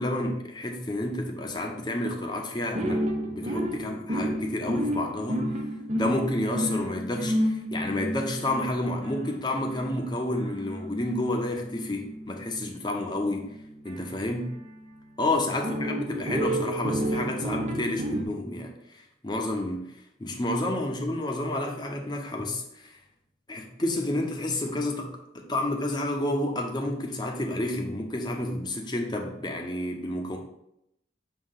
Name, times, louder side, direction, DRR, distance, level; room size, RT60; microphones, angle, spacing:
voice 1, 0.0-5.5 6.0-13.6 13.8-14.5 15.2-19.9 20.2-23.0 23.5-30.4, left 1 dB, 20° left, 2 dB, 0.7 m, -30 dB
sound 1, 2.7-14.9 15.6-18.2, equal, 35° right, 0.6 m, -31 dB
6.4 x 2.9 x 5.6 m, 0.81 s
head